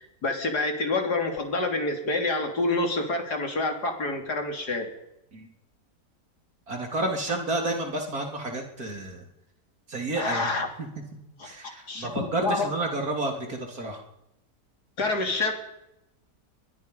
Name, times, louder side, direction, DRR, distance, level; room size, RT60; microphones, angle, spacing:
voice 1, 0.0-4.9 10.2-10.7 11.4-11.5 11.9-12.7 15.0-15.5, left 2 dB, 65° left, 4 dB, 3.9 m, -27 dB
voice 2, 6.7-9.3 9.9-10.5 10.8-10.9 11.4-14.0, right 2 dB, 60° right, 2 dB, 3.9 m, -30 dB
23.0 x 22.5 x 5.5 m, 0.87 s
omnidirectional pair, 1.8 m